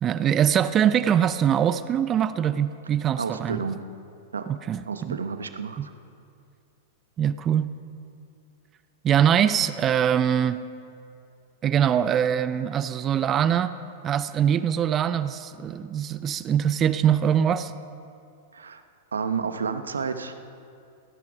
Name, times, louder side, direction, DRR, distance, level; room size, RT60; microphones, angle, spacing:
voice 1, 0.0-3.6 4.5-5.2 5.8-5.9 7.2-7.7 9.0-10.6 11.6-13.7 14.0-17.7, right 9 dB, 30° right, 13 dB, 0.5 m, -23 dB
voice 2, 3.2-3.8 4.3-4.5 4.9-5.9 18.5-18.8 19.1-20.3, right 5 dB, 85° right, 9 dB, 0.9 m, -30 dB
17.0 x 11.0 x 5.2 m, 2.4 s
hypercardioid pair, 105°, 0 cm